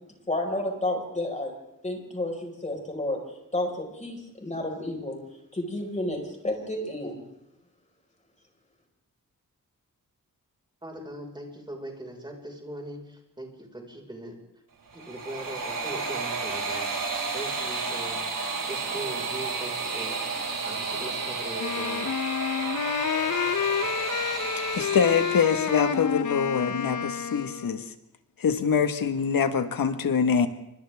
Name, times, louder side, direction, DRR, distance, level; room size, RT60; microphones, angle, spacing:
voice 1, 0.3-1.5 1.8-3.2 3.5-5.2 5.5-7.2, left 1 dB, 20° left, 1 dB, 5.3 m, -31 dB
voice 2, 10.8-14.4 14.9-16.9 17.3-18.2 18.6-20.2 20.6-22.1, right 1 dB, 15° right, 1 dB, 5.4 m, -40 dB
sound 1, 14.9-26.0, right 4 dB, 70° right, 5.8 m, -32 dB
Wind instrument woodwind instrument, 21.6-27.8, left 8 dB, 60° left, 1.1 m, -29 dB
voice 3, 24.7-27.9 28.4-30.5, left 6 dB, 75° left, 8 dB, 1.7 m, -24 dB
28.5 x 25.5 x 3.7 m, 0.85 s
wide cardioid pair, 125°, 34 cm